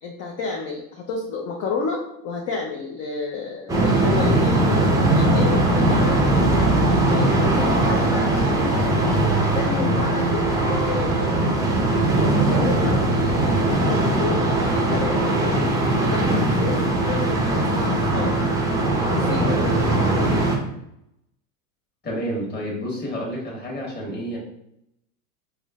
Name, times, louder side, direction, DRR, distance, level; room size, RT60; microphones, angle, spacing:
voice 1, 0.0-6.2 6.9-11.4 11.9-15.7 16.0-18.4 19.0-20.4, left 4 dB, 35° left, 0 dB, 0.5 m, -31 dB
sound 1, 3.7-20.6, right 2 dB, 10° right, 0.5 m, -20 dB
voice 2, 22.0-24.4, equal, 20° left, -4 dB, 1.3 m, -29 dB
4.9 x 2.1 x 2.4 m, 0.78 s
supercardioid pair, 110°, 43 cm